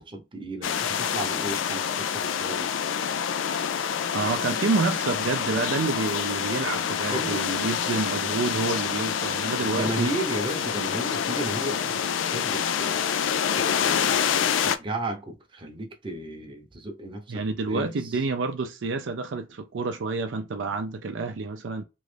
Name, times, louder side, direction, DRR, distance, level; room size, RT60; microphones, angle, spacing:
voice 1, 0.0-2.7 7.1-7.5 9.6-13.0 13.5-18.2, right 1 dB, 25° right, 0.8 m, -34 dB
sound 1, 0.6-14.8, left 8 dB, 90° left, 0.3 m, -27 dB
voice 2, 4.1-10.1 17.3-21.8, right 3 dB, 75° right, 0.5 m, -28 dB
3.1 x 2.4 x 3.2 m
head